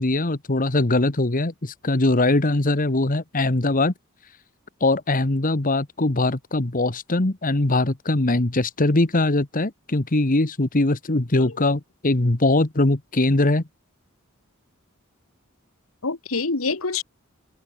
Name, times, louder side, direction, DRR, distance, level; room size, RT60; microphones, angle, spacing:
voice 1, 0.0-3.9 4.8-13.6, left 2 dB, 40° left, 1.4 m, -21 dB
voice 2, 11.4-11.7 16.0-17.0, left 4 dB, 90° left, 1.9 m, -27 dB
head